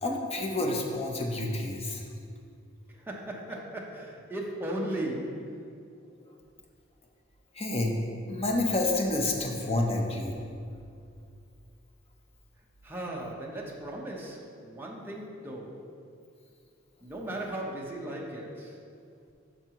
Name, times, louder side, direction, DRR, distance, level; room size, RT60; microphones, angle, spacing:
voice 1, 0.0-2.0 7.6-7.9 8.3-10.4, left 2 dB, 30° left, 0 dB, 0.8 m, -29 dB
voice 2, 3.1-5.5 12.8-15.8 17.0-18.7, right 1 dB, 10° right, -3 dB, 0.9 m, -37 dB
10.5 x 6.0 x 3.0 m, 2.4 s
head